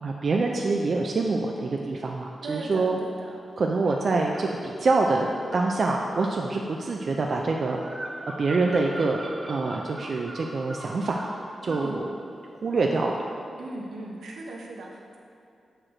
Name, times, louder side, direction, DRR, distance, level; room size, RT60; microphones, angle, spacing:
voice 1, 0.0-3.0 3.6-8.0 8.4-9.2 9.5-11.2 11.6-12.1 12.6-13.1, right 3 dB, 60° right, 0 dB, 0.4 m, -25 dB
voice 2, 2.4-3.4 11.7-12.0 13.6-15.2, right 2 dB, 90° right, -1 dB, 0.8 m, -38 dB
sound 1, 3.9-4.5 5.5-12.0, right 1 dB, 20° right, 0.9 m, -41 dB
6.2 x 4.9 x 4.4 m, 2.6 s
cardioid pair, 75°, 0 cm